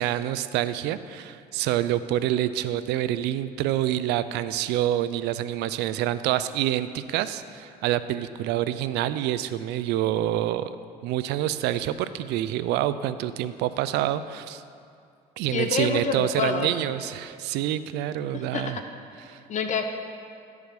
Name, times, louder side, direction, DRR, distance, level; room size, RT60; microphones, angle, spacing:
voice 1, 0.0-10.8 11.0-14.6 15.4-18.8 19.3-19.4, right 12 dB, 85° right, 13 dB, 0.4 m, -27 dB
voice 2, 15.5-16.9 18.3-18.6 19.5-19.9, left 5 dB, 45° left, 5 dB, 0.7 m, -27 dB
11.5 x 4.8 x 5.2 m, 2.4 s
cardioid pair, 110°, 17 cm